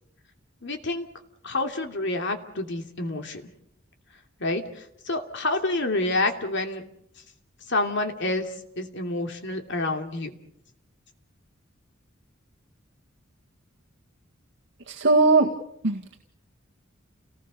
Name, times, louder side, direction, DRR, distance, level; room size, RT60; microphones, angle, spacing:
voice 1, 0.6-1.1 1.4-3.4 4.4-6.8 7.7-8.5 8.8-10.3, left 2 dB, 60° left, 5 dB, 2.9 m, -28 dB
voice 2, 14.9-15.5 15.8-16.2, right 3 dB, 60° right, 0 dB, 2.0 m, -20 dB
30.0 x 19.5 x 6.8 m, 0.75 s
head